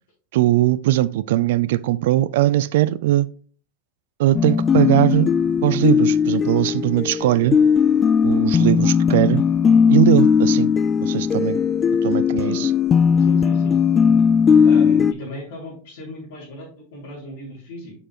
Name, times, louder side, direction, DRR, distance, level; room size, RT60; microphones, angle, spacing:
voice 1, 0.3-3.3 4.2-5.3 5.6-7.6 8.2-9.4 9.9-10.7 11.0-11.6 12.0-12.7, right 14 dB, 75° right, 0.4 m, -20 dB
sound 1, 4.3-15.1, left 6 dB, 25° left, 0.3 m, -18 dB
voice 2, 13.2-13.8 14.6-17.9, left 2 dB, 85° left, 3.2 m, -36 dB
6.3 x 5.5 x 3.0 m
supercardioid pair, 110°, 0 cm